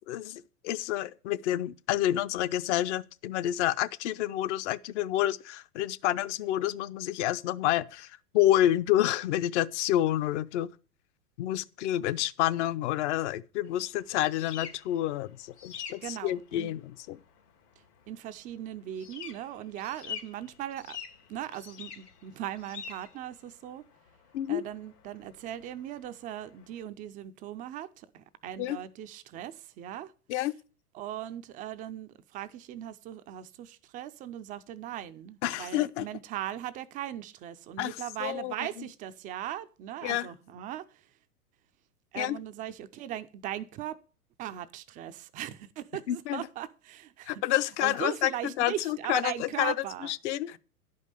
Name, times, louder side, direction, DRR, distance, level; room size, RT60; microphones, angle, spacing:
voice 1, 0.1-10.7 11.4-17.2 24.3-24.6 28.6-28.8 30.3-30.5 35.4-36.1 37.8-38.8 40.0-40.3 42.1-42.4 46.1-46.5 47.3-49.7 50.0-50.6, left 13 dB, 50° left, 0.7 m, -29 dB
sound 1, 13.6-26.8, left 8 dB, 85° left, 2.8 m, -47 dB
voice 2, 16.0-16.7 18.1-21.0 21.3-23.8 24.5-30.1 30.9-41.0 42.1-43.9 44.4-47.4 47.8-50.1, right 12 dB, 20° right, 0.4 m, -39 dB
11.0 x 5.5 x 6.7 m
hypercardioid pair, 110°, 46 cm